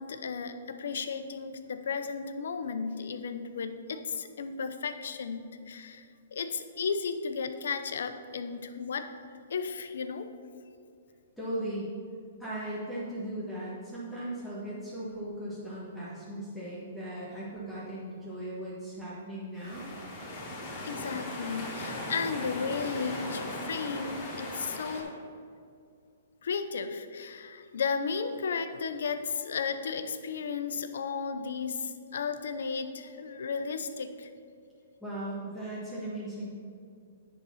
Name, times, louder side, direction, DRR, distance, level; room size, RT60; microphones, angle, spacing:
voice 1, 0.0-9.1 9.5-10.3 20.8-25.1 26.4-34.3, left 5 dB, 75° left, 9 dB, 0.6 m, -34 dB
voice 2, 11.4-11.9 12.4-19.9 35.0-36.5, right 1 dB, ahead, -10 dB, 1.5 m, -37 dB
sound 1, 19.6-25.0, left 1 dB, 25° left, 2.2 m, -38 dB
9.9 x 4.0 x 5.7 m, 2.4 s
hypercardioid pair, 150°, 0 cm